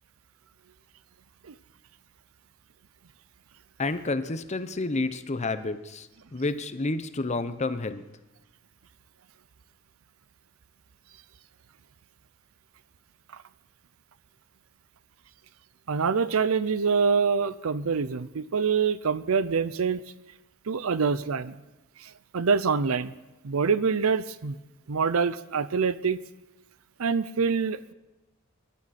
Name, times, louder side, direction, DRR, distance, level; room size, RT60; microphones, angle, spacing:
voice 1, 3.8-8.0, left 3 dB, 35° left, 11 dB, 0.8 m, -30 dB
voice 2, 15.9-20.0 20.7-21.5 22.0-23.1 23.4-24.6 24.9-26.2 27.0-27.9, right 5 dB, 80° right, 16 dB, 0.6 m, -25 dB
22.0 x 11.5 x 4.2 m, 1.1 s
head